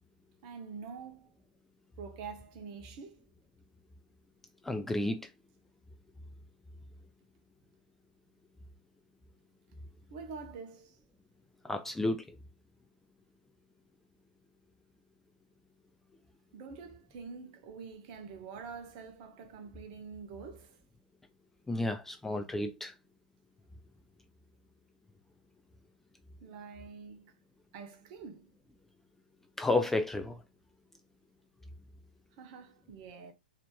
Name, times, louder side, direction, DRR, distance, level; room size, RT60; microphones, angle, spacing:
voice 1, 0.4-1.3 2.0-3.3 9.7-9.8 10.1-11.0 16.5-20.8 26.4-27.3 27.7-28.5 32.4-33.3, right 5 dB, 45° right, 1.0 m, -46 dB
voice 2, 4.6-5.3 11.6-12.4 21.7-22.9 29.6-30.4, left 2 dB, 5° left, 0.3 m, -31 dB
4.1 x 2.9 x 2.9 m
hypercardioid pair, 120°, 5 cm